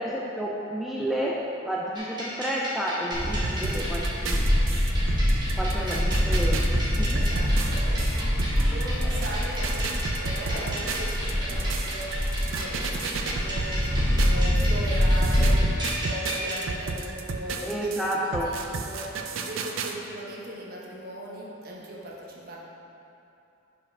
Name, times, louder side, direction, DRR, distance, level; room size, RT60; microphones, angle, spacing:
voice 1, 0.0-4.4 5.6-6.6 7.0-7.3 17.6-18.5, right 1 dB, ahead, -4 dB, 0.3 m, -30 dB
sound 1, 1.9-16.6, equal, 20° right, 1.2 m, -35 dB
Livestock farm animals working animals, 3.1-15.6, equal, 40° left, 1.4 m, -25 dB
sound 2, 3.4-14.6 15.0-19.9, right 4 dB, 70° right, 0.4 m, -34 dB
voice 2, 7.1-22.6, right 1 dB, 45° right, -3 dB, 1.0 m, -39 dB
5.5 x 4.6 x 5.2 m, 2.8 s
head